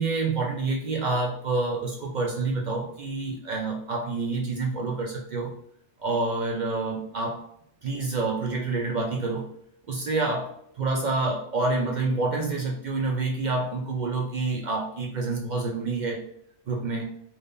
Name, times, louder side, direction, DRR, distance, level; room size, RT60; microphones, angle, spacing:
voice 1, 0.0-5.5 6.0-7.4 7.8-9.5 9.9-16.2 16.7-17.1, right 3 dB, 60° right, -1 dB, 0.4 m, -28 dB
3.5 x 2.5 x 2.5 m, 0.66 s
omnidirectional pair, 1.3 m